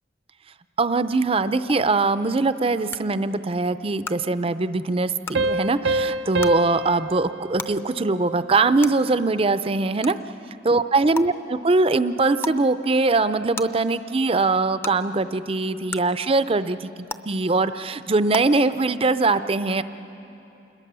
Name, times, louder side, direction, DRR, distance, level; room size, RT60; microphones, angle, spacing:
voice 1, 0.8-10.2 10.6-16.9 17.3-19.8, right 3 dB, 30° right, 13 dB, 0.5 m, -22 dB
sound 1, 1.7-1.8 2.9-3.0 4.0-4.1 5.2-5.3 6.4-6.5 7.6-7.7 8.8-8.9 10.0-10.1 11.1-11.2 12.4-12.6 13.5-13.6 14.8-14.9 15.9-16.0 17.1-17.2 18.3-18.4, left 3 dB, 15° left, 0.6 m, -31 dB
sound 2, 5.3-8.6, right 2 dB, 80° right, 0.5 m, -27 dB
28.0 x 21.5 x 6.8 m, 2.9 s
head